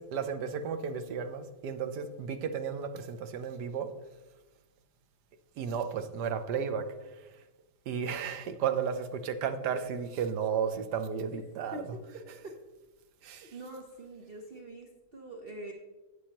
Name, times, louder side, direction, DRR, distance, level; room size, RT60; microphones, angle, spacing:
voice 1, 0.0-3.9 5.6-6.8 7.9-11.8 12.1-12.5 13.2-13.6, right 7 dB, 85° right, 8 dB, 1.4 m, -33 dB
voice 2, 11.7-12.5 13.4-15.7, right 1 dB, 40° right, 0 dB, 1.0 m, -45 dB
12.5 x 8.2 x 2.9 m, 1.1 s
omnidirectional pair, 1.7 m